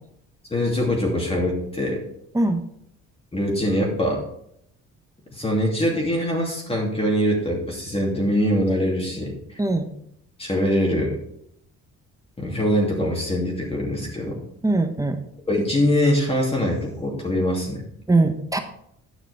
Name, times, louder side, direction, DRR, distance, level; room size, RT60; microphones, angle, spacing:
voice 1, 0.5-2.0 3.3-4.2 5.3-9.6 10.4-11.2 12.4-14.4 15.5-17.8, equal, 20° left, -1 dB, 2.8 m, -23 dB
voice 2, 14.6-15.2 18.1-18.6, right 2 dB, 10° right, 7 dB, 1.2 m, -21 dB
9.9 x 6.0 x 5.0 m, 0.73 s
cardioid pair, 90°, 30 cm